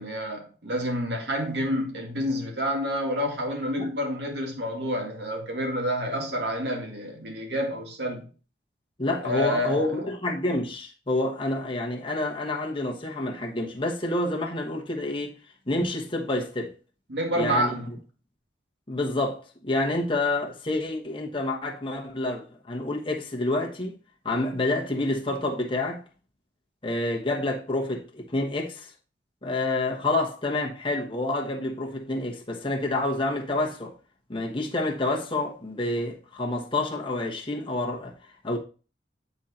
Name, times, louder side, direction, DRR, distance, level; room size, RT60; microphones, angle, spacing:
voice 1, 0.0-8.3 9.2-10.0 17.1-17.9, equal, 75° right, 2.1 m, -28 dB
voice 2, 9.0-15.4 15.7-16.7 17.3-18.0 18.9-24.0 24.2-26.0 26.8-28.9 29.4-33.9 34.3-38.1 38.4-38.6, left 2 dB, 30° left, 1.2 m, -28 dB
9.4 x 3.9 x 4.3 m
head